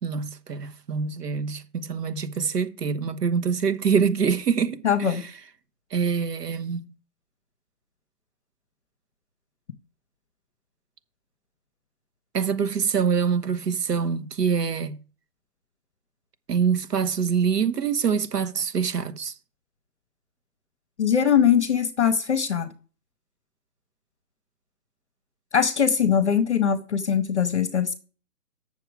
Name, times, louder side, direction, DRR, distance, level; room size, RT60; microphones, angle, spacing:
voice 1, 0.0-5.1 5.9-6.9 12.3-15.0 16.5-19.3, right 6 dB, 80° right, 1.3 m, -25 dB
voice 2, 4.8-5.3 21.0-22.7 25.5-27.9, left 8 dB, 45° left, 0.8 m, -21 dB
8.3 x 6.9 x 4.7 m
hypercardioid pair, 175°, 47 cm